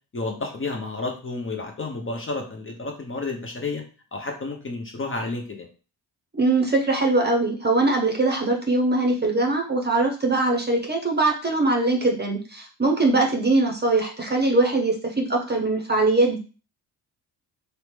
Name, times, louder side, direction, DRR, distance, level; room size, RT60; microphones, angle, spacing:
voice 1, 0.1-3.8 4.1-5.7, left 3 dB, 25° left, 2 dB, 0.8 m, -31 dB
voice 2, 6.3-16.4, right 2 dB, 20° right, 1 dB, 0.8 m, -22 dB
3.0 x 2.1 x 3.2 m, 0.36 s
supercardioid pair, 50°, 47 cm